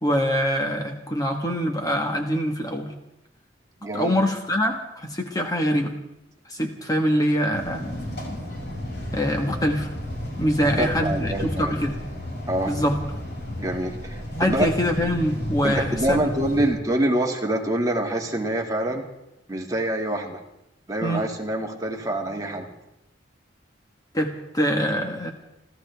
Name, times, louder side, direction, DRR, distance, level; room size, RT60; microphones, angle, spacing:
voice 1, 0.0-2.9 3.9-6.0 6.5-7.8 9.1-9.9 10.4-12.0 12.7-13.0 14.3-16.2 21.0-21.2 24.1-25.3, equal, 20° left, 3 dB, 1.4 m, -24 dB
voice 2, 3.8-4.1 10.8-11.7 12.5-12.7 13.6-14.7 15.6-19.0 19.5-20.4 20.9-22.7, right 1 dB, 20° right, 0 dB, 2.1 m, -26 dB
sound 1, 7.5-16.7, equal, 65° left, 6.6 m, -32 dB
29.5 x 14.0 x 3.5 m, 0.87 s
head